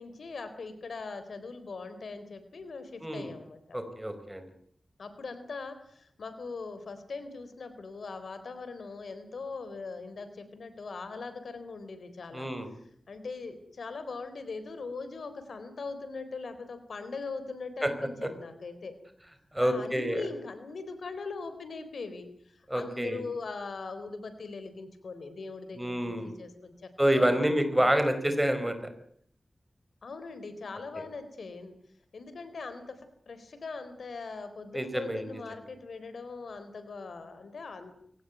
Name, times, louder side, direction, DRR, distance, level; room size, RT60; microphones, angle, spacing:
voice 1, 0.0-3.8 5.0-12.5 13.1-19.0 19.6-28.0 30.0-31.7 32.1-33.0 33.3-37.9, left 4 dB, 90° left, 11 dB, 4.0 m, -41 dB
voice 2, 3.0-3.3 3.7-4.5 12.3-12.7 17.8-17.9 18.2-18.3 19.5-20.2 22.7-23.2 25.8-26.4 27.0-28.7 34.7-35.2, right 1 dB, 10° right, 9 dB, 4.7 m, -27 dB
23.0 x 18.5 x 9.3 m, 0.64 s
wide cardioid pair, 115°, 0 cm